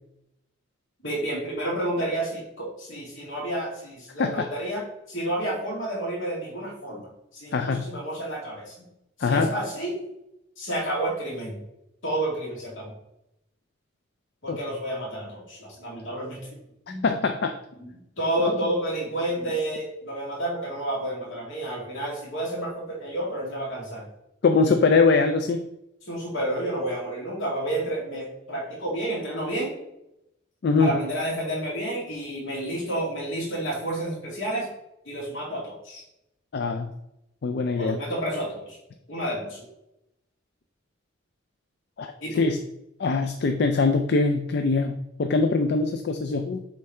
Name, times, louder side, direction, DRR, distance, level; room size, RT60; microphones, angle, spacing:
voice 1, 1.0-8.7 9.2-9.9 10.6-11.6 12.0-12.9 14.4-16.5 16.9-17.1 17.8-24.1 24.6-24.7 26.1-29.7 30.8-34.7 35.1-36.0 37.8-38.8 39.1-39.7 42.2-42.4, right 1 dB, 70° left, -4 dB, 2.3 m, -30 dB
voice 2, 7.5-7.8 9.2-9.5 14.5-14.6 17.0-17.5 18.4-18.5 24.4-25.6 30.6-30.9 36.5-36.9 37.4-38.0 42.0-42.1 42.4-42.6 43.0-46.6, left 4 dB, 55° left, 6 dB, 0.4 m, -22 dB
7.1 x 3.3 x 4.3 m, 0.85 s
head